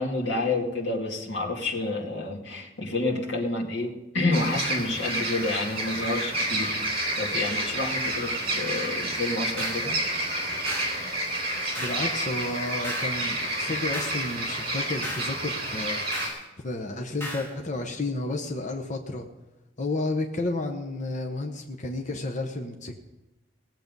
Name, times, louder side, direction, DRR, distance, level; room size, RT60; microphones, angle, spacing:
voice 1, 0.0-6.8 7.2-9.9, left 2 dB, 70° left, -2 dB, 2.3 m, -29 dB
sound 1, 4.3-16.3, right 1 dB, 30° right, 3.3 m, -29 dB
sound 2, 9.6-9.9 10.7-11.0 11.7-12.1 12.8-13.2 13.9-14.3 15.0-15.3 16.1-16.4 17.2-17.5, left 1 dB, 15° left, 1.9 m, -36 dB
voice 2, 11.8-16.0 16.6-19.3 19.8-23.0, left 2 dB, 40° left, 3 dB, 0.9 m, -31 dB
18.0 x 7.6 x 5.4 m, 1.0 s
head